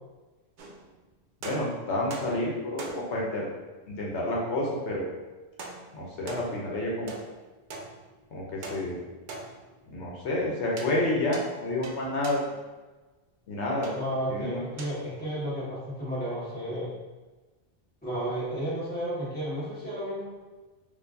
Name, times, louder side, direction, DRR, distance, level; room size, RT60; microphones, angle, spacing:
sound 1, 0.6-1.0 1.4-3.4 5.6-6.7 7.1-8.3 8.6-9.9 10.8-11.0 11.3-12.5 13.8-14.1 14.8-15.1, right 3 dB, 60° right, 0.6 m, -43 dB
voice 1, 1.4-3.5 3.9-5.1 5.9-7.2 8.3-9.0 9.9-12.5 13.5-13.9 14.3-14.6, left 1 dB, 80° left, -3 dB, 1.0 m, -29 dB
voice 2, 13.9-16.9 18.0-20.3, right 1 dB, 10° left, -11 dB, 1.5 m, -32 dB
4.4 x 2.6 x 2.6 m, 1.2 s
omnidirectional pair, 1.1 m